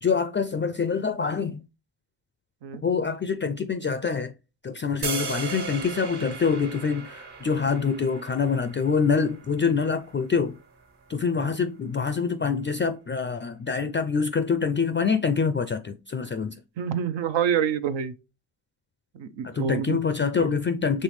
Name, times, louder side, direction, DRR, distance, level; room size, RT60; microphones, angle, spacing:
voice 1, 0.0-1.6 2.8-4.3 4.6-10.6 11.1-16.6 19.4-21.0, left 5 dB, 25° left, 0.4 m, -25 dB
sound 1, 5.0-11.1, right 5 dB, 55° right, 1.6 m, -37 dB
voice 2, 16.8-18.1 19.1-20.5, right 8 dB, 75° right, 0.7 m, -28 dB
5.3 x 3.2 x 3.1 m
supercardioid pair, 45°, 45 cm